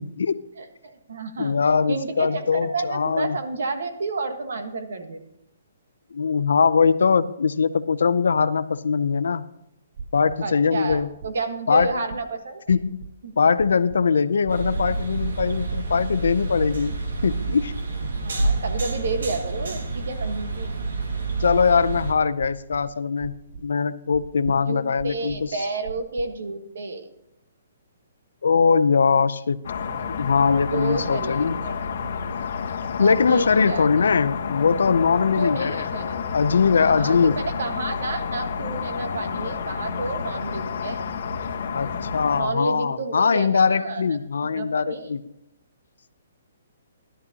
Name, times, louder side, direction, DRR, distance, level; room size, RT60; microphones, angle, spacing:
voice 1, 0.0-0.4 1.4-3.4 6.1-9.4 10.1-11.1 11.7-11.9 12.7-13.0 13.4-17.7 21.4-25.5 28.4-29.6 30.1-31.6 33.0-35.9 36.3-37.4 41.7-45.2, left 5 dB, 80° left, 14 dB, 0.6 m, -21 dB
voice 2, 0.6-1.6 1.9-5.2 10.4-12.6 13.2-13.3 18.2-20.7 24.7-27.1 30.7-31.8 33.0-34.0 35.4-36.2 36.8-41.1 42.4-44.2 44.5-45.1, right 3 dB, 65° right, 7 dB, 1.4 m, -30 dB
sound 1, 9.9-10.4 10.9-11.3 11.8-12.3 12.7-13.1 13.6-14.0 14.4-14.8 15.4-15.8 16.3-16.8 17.2-17.6 18.1-18.6 19.0-19.4 19.9-21.1 21.5-22.0 22.4-22.9 23.2-23.7 24.1-24.5 25.0-25.5 25.8-26.3, right 5 dB, 30° right, 0.4 m, -38 dB
sound 2, 14.5-22.1, right 3 dB, 85° right, 2.0 m, -28 dB
sound 3, 29.6-42.4, left 6 dB, 50° left, 1.2 m, -30 dB
13.5 x 12.0 x 2.9 m, 0.83 s
hypercardioid pair, 180°, 0 cm